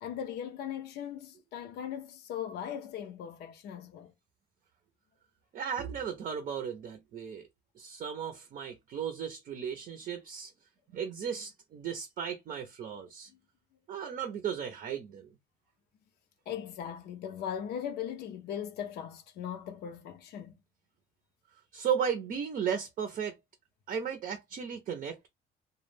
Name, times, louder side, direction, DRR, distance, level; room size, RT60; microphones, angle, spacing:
voice 1, 0.0-4.1 13.3-13.4 16.5-20.5, left 9 dB, 70° left, 0.5 m, -39 dB
voice 2, 5.5-7.5 7.8-10.5 10.9-13.3 13.9-15.3 21.7-23.4 23.9-25.3, right 7 dB, 50° right, 0.5 m, -35 dB
2.1 x 2.1 x 3.2 m
cardioid pair, 110°, 17 cm